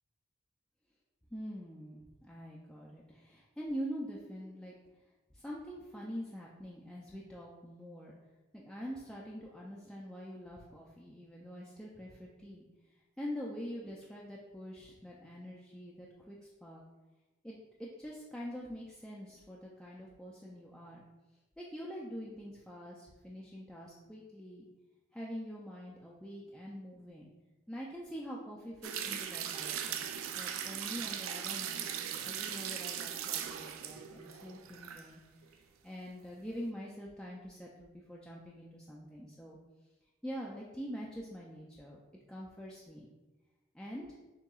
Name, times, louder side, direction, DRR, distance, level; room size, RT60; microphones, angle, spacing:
voice 1, 1.3-4.7 5.3-8.1 8.5-12.7 13.2-16.8 17.4-21.0 21.6-24.7 25.1-27.3 27.7-35.2 35.5-39.6 40.2-42.0 42.3-43.1 43.7-44.1, equal, 5° left, -5 dB, 0.3 m, -45 dB
sound 1, 28.8-35.1 35.4-35.5, right 9 dB, 90° right, 0.4 m, -39 dB
6.5 x 2.8 x 2.3 m, 1.1 s
head